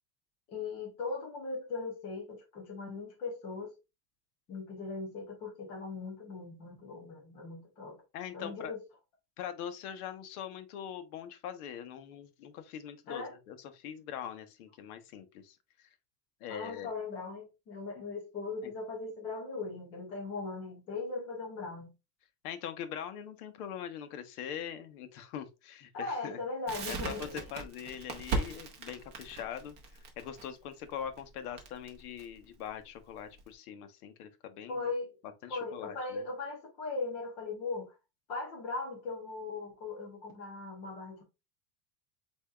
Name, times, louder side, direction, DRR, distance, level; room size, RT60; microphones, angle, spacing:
voice 1, 0.5-3.8 4.5-8.0 8.3-8.8 13.1-13.3 16.5-21.9 25.9-27.4 34.7-35.2 35.5-37.9 38.3-41.2, left 3 dB, 15° left, 0.3 m, -39 dB
voice 2, 8.1-8.7 9.4-15.9 16.4-16.9 18.6-18.7 22.4-26.4 26.9-29.7 30.2-34.9 35.4-36.2, left 9 dB, 65° left, 0.9 m, -42 dB
Crackle, 26.7-33.5, right 3 dB, 20° right, 0.7 m, -39 dB
8.2 x 2.7 x 2.2 m
supercardioid pair, 170°, 48 cm